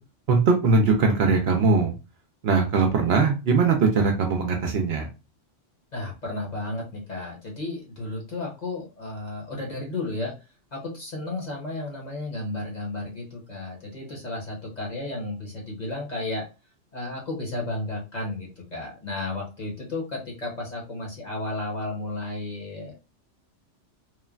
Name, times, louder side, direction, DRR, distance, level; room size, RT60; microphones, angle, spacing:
voice 1, 0.3-1.9 2.4-5.1, right 4 dB, 65° right, 3 dB, 0.7 m, -21 dB
voice 2, 5.9-10.3 10.7-16.4 16.9-22.9, left 2 dB, 40° left, -2 dB, 0.9 m, -33 dB
3.1 x 2.1 x 2.4 m, 0.29 s
omnidirectional pair, 1.3 m